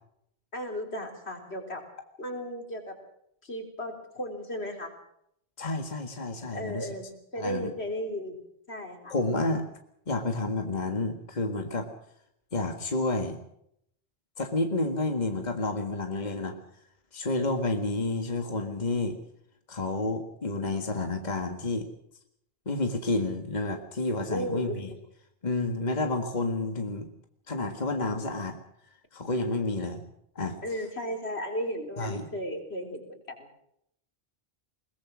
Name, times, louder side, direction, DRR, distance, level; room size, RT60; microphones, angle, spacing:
voice 1, 0.5-1.8 2.2-3.0 3.4-4.9 6.5-8.4 8.7-9.1 16.1-16.6 24.3-25.0 30.6-33.5, equal, 80° left, 4 dB, 4.3 m, -35 dB
voice 2, 5.6-6.9 7.4-7.7 9.1-9.6 10.1-11.9 12.5-13.4 14.4-16.6 17.1-19.2 19.7-21.9 22.7-24.9 25.4-27.1 27.5-28.6 29.1-30.0 30.4-30.6 32.0-32.3, left 2 dB, 45° left, 5 dB, 2.0 m, -30 dB
22.0 x 20.5 x 6.3 m, 0.74 s
omnidirectional pair, 1.1 m